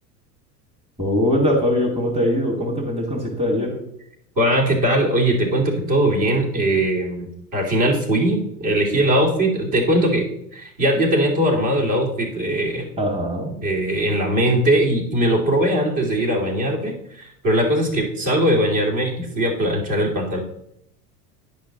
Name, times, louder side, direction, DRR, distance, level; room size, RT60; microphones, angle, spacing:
voice 1, 1.0-3.8 13.0-13.5, left 1 dB, 10° right, -2 dB, 2.2 m, -21 dB
voice 2, 4.4-10.2 10.5-12.9 13.6-20.4, right 1 dB, 45° right, -1 dB, 2.7 m, -20 dB
10.0 x 5.4 x 3.8 m, 0.75 s
figure-of-eight pair, 80°, 47 cm